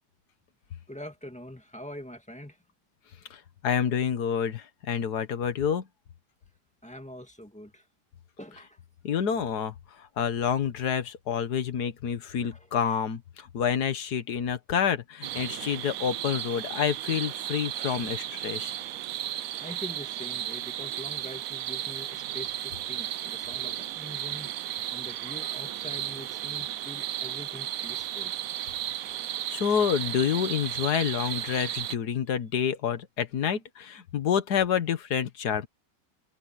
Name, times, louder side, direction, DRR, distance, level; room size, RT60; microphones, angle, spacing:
voice 1, 0.9-2.6 6.8-7.8 8.4-8.8 12.4-13.0 19.6-28.3, left 1 dB, 5° left, 1.8 m, -44 dB
voice 2, 3.6-5.8 9.0-9.7 10.2-18.7 29.5-35.7, left 8 dB, 70° left, 1.8 m, -28 dB
sound 1, 15.2-32.0, right 12 dB, 65° right, 0.9 m, -34 dB
omnidirectional pair, 1.8 m